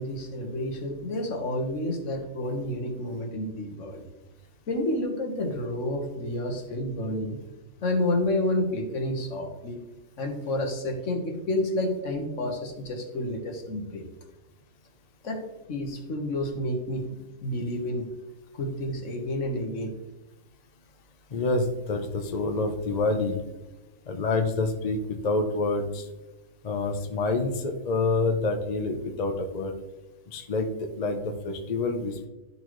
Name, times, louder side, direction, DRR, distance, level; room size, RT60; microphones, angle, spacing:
voice 1, 0.0-4.1 4.7-7.4 7.8-9.8 10.2-14.0 15.2-15.4 15.7-18.1 18.5-19.9, left 1 dB, 65° left, 2 dB, 1.5 m, -30 dB
voice 2, 21.3-23.4 24.1-26.0 26.6-29.7 30.3-32.3, left 3 dB, 40° left, 4 dB, 0.7 m, -27 dB
12.0 x 4.2 x 3.1 m, 1.1 s
omnidirectional pair, 1.4 m